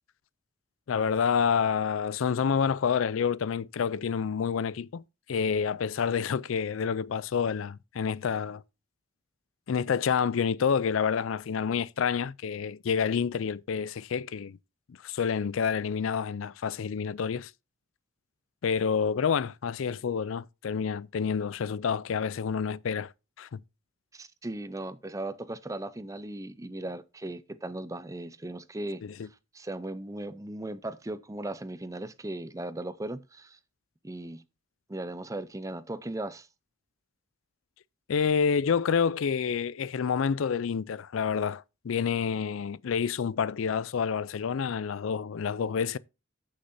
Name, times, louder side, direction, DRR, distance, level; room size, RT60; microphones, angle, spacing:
voice 1, 0.9-5.0 5.3-8.6 9.7-14.6 14.9-17.5 18.6-23.1 23.4-23.6 29.0-29.3 38.1-46.0, left 6 dB, 80° left, 0.4 m, -28 dB
voice 2, 24.1-29.0 29.5-33.6 34.0-34.4 34.9-36.5, right 1 dB, 15° right, 0.5 m, -37 dB
15.5 x 6.5 x 2.7 m
head